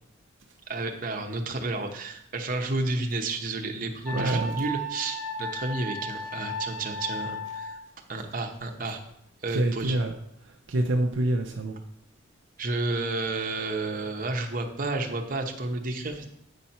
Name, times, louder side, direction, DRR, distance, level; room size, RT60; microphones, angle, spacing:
voice 1, 0.7-7.8 8.1-9.0 9.4-10.0 12.6-16.2, right 2 dB, 45° right, 4 dB, 0.9 m, -31 dB
Wind instrument woodwind instrument, 4.0-7.8, equal, 65° left, 3.4 m, -35 dB
voice 2, 4.1-4.6 9.5-10.1 10.7-11.8, right 1 dB, 70° right, 3 dB, 0.6 m, -26 dB
8.3 x 4.3 x 5.5 m, 0.75 s
head